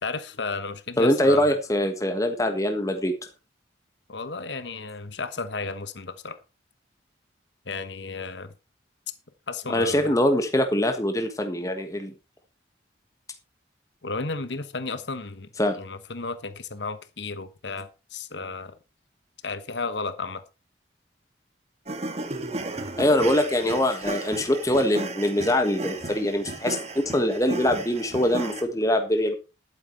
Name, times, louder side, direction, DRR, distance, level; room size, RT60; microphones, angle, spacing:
voice 1, 0.0-1.5 4.1-6.4 7.6-8.5 9.5-10.1 14.0-15.5 15.7-18.7 19.4-20.4, left 4 dB, 75° left, 12 dB, 1.1 m, -33 dB
voice 2, 1.0-3.1 9.7-12.1 15.6-15.8 23.0-29.3, left 1 dB, 20° left, 6 dB, 1.4 m, -23 dB
sound 1, 21.9-28.6, right 2 dB, 35° right, 1.7 m, -34 dB
11.5 x 9.3 x 4.5 m, 0.30 s
head